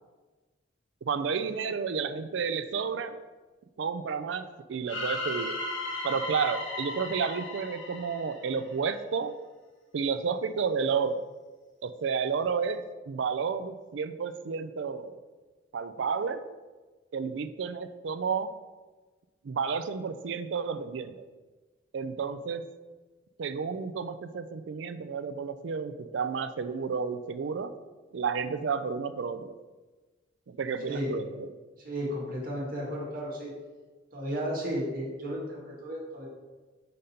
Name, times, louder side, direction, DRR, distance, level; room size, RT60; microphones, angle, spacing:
voice 1, 1.0-3.2 3.8-5.6 6.0-9.3 9.9-11.2 11.8-15.2 15.7-16.4 17.1-18.5 19.4-21.2 21.9-22.6 23.4-27.7 28.1-29.6 30.5-31.5, right 5 dB, 65° right, 11 dB, 0.4 m, -31 dB
sound 1, 4.9-8.9, left 2 dB, 75° left, 1.2 m, -36 dB
voice 2, 30.9-31.2 31.8-33.5 34.1-36.3, equal, 45° right, -3 dB, 1.7 m, -33 dB
5.3 x 5.2 x 4.2 m, 1.3 s
head